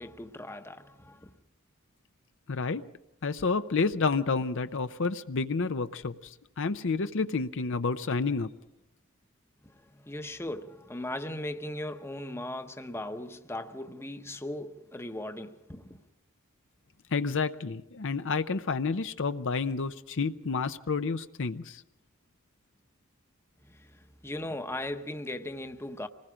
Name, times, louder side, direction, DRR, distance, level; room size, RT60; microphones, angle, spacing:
voice 1, 0.0-1.3 9.6-16.0 23.6-26.1, left 1 dB, 10° left, 0.9 m, -38 dB
voice 2, 2.5-2.8 3.2-6.1 6.6-8.5 17.1-21.8, left 4 dB, 65° left, 0.7 m, -29 dB
26.0 x 19.5 x 5.0 m
head